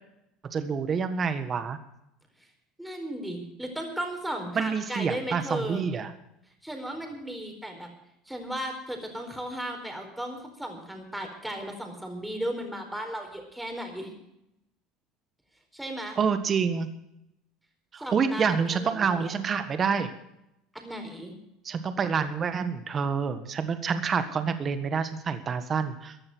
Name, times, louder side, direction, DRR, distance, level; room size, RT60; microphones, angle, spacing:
voice 1, 0.5-1.8 4.5-6.1 16.2-16.9 17.9-20.1 21.6-26.3, right 6 dB, 35° right, 10 dB, 1.5 m, -27 dB
voice 2, 2.8-5.8 6.6-7.9 8.3-14.2 15.7-16.2 18.0-19.3 20.7-21.3, right 1 dB, 5° right, 4 dB, 4.3 m, -35 dB
15.5 x 11.0 x 6.2 m, 0.83 s
supercardioid pair, 110°, 0 cm